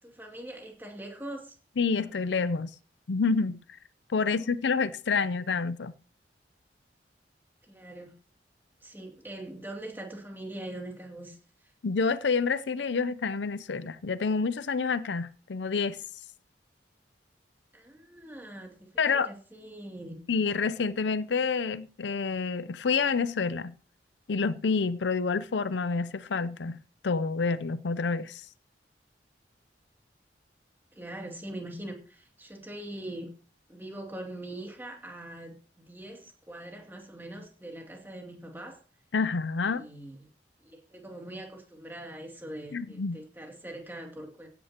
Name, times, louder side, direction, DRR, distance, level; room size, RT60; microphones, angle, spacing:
voice 1, 0.0-1.6 4.2-4.6 7.6-8.1 8.8-11.7 17.7-20.2 30.9-33.3 33.7-38.8 39.6-40.3 40.6-44.5, right 1 dB, 10° right, 2.6 m, -42 dB
voice 2, 1.8-2.7 3.1-3.6 4.1-5.9 11.8-16.0 19.0-19.3 20.3-23.7 24.3-26.8 27.0-28.4 39.1-39.8 42.7-43.2, left 4 dB, 80° left, 0.6 m, -28 dB
16.0 x 9.6 x 2.9 m
head